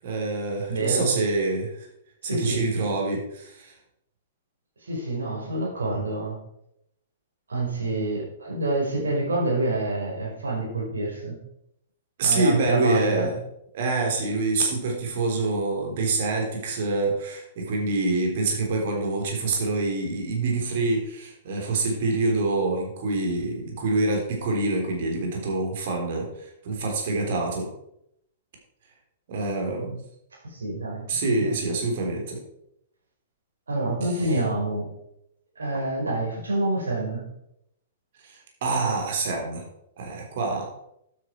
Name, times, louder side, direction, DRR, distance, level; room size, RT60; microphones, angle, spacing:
voice 1, 0.0-1.9 2.2-3.7 12.2-13.4 13.7-27.7 29.3-30.0 31.1-32.4 38.2-39.6 40.0-40.7, right 3 dB, 55° right, 1 dB, 3.9 m, -26 dB
voice 2, 0.7-1.1 2.2-2.6 4.8-6.4 7.5-11.4 12.2-13.3 30.4-31.5 33.7-34.9 35.6-37.3, right 2 dB, 75° right, -2 dB, 5.0 m, -27 dB
12.0 x 8.8 x 4.7 m, 0.79 s
figure-of-eight pair, 110°, 0 cm